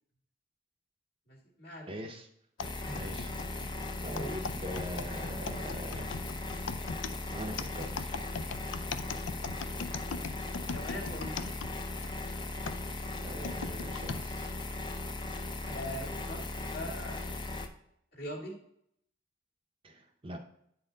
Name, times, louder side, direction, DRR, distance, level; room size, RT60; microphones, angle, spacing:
voice 1, 1.3-2.0 2.8-3.0 4.1-4.3 9.6-9.9 10.7-11.5 15.6-17.5 18.1-18.6, equal, 55° left, -1 dB, 1.9 m, -42 dB
voice 2, 1.9-2.3 2.9-3.3 4.0-6.2 7.3-8.2 13.2-14.5 19.8-20.4, equal, 30° right, 4 dB, 0.6 m, -42 dB
sound 1, 2.6-12.1 12.7-14.2 14.9-15.0 15.8-16.1, left 5 dB, 80° left, 0.4 m, -40 dB
sound 2, 2.6-17.7, left 2 dB, 25° left, 0.5 m, -38 dB
8.7 x 4.3 x 3.9 m, 0.71 s
head